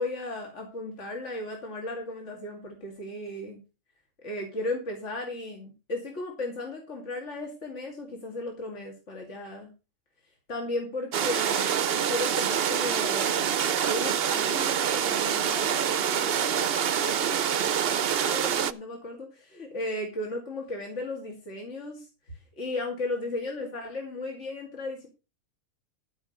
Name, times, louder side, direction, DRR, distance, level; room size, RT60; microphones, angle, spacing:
voice 1, 0.0-3.6 4.2-9.7 10.5-13.5 13.8-16.7 17.0-25.1, left 2 dB, 60° left, 0 dB, 3.0 m, -35 dB
sound 1, 11.1-18.7, right 8 dB, 55° right, 0.8 m, -26 dB
14.5 x 5.5 x 6.6 m, 0.31 s
omnidirectional pair, 1.4 m